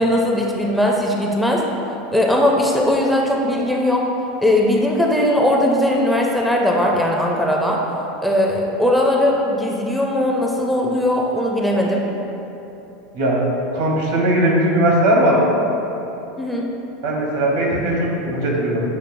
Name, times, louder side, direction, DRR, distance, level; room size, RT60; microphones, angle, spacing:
voice 1, 0.0-1.6 2.1-4.0 4.4-7.8 8.2-12.1 16.4-16.7, left 1 dB, ahead, -1 dB, 0.4 m, -19 dB
voice 2, 13.7-15.4 17.0-18.8, right 1 dB, 75° right, -2 dB, 1.0 m, -18 dB
6.9 x 2.6 x 2.6 m, 3.0 s
supercardioid pair, 120°, 0 cm